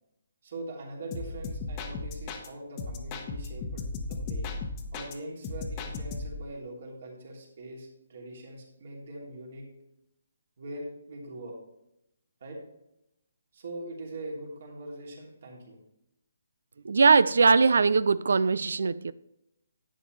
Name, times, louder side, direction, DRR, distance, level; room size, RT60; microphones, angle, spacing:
voice 1, 0.4-4.5 4.9-9.7 10.6-11.5 12.4-12.6 13.5-15.8, right 1 dB, 55° right, 3.0 m, -42 dB
sound 1, 1.1-2.5 2.8-5.1 5.4-6.4, left 3 dB, 25° left, 1.1 m, -36 dB
voice 2, 16.8-19.1, right 4 dB, 75° right, 0.4 m, -21 dB
11.0 x 8.8 x 3.2 m
hypercardioid pair, 155°, 0 cm